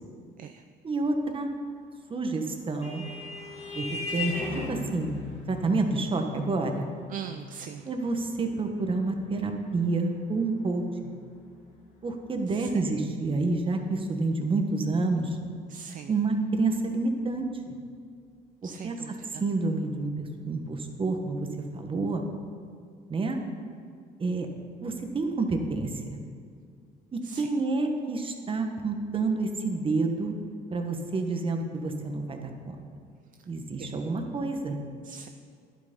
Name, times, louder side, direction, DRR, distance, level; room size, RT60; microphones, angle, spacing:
voice 1, 0.8-1.5 2.1-3.0 3.7-5.1 5.5-6.8 7.9-11.1 12.0-15.4 16.1-17.7 18.8-19.0 19.4-21.5 21.7-22.2 23.1-23.4 24.2-24.5 24.8-26.2 27.1-30.3 30.7-32.8 33.5-34.8, right 3 dB, 30° right, 4 dB, 1.3 m, -29 dB
Vehicle horn car horn honking, 2.2-11.2, left 2 dB, 40° left, 2.5 m, -39 dB
voice 2, 7.1-7.9 12.5-12.7 15.7-16.1 18.6-19.4 27.2-27.5 33.8-33.9 35.0-35.3, right 8 dB, 55° right, 8 dB, 0.5 m, -41 dB
11.0 x 8.7 x 5.4 m, 2.3 s
cardioid pair, 110°, 17 cm